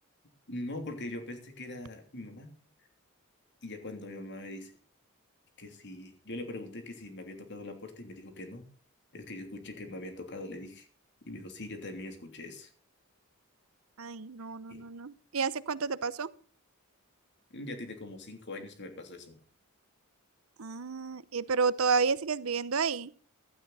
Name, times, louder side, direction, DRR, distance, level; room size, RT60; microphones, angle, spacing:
voice 1, 0.5-2.5 3.6-4.7 5.6-8.6 9.1-10.9 11.2-12.7 14.7-14.8 17.5-19.4, left 2 dB, 55° left, 6 dB, 3.1 m, -42 dB
voice 2, 14.0-16.3 20.6-23.1, right 5 dB, 70° right, 17 dB, 0.8 m, -30 dB
16.0 x 12.0 x 4.2 m, 0.42 s
head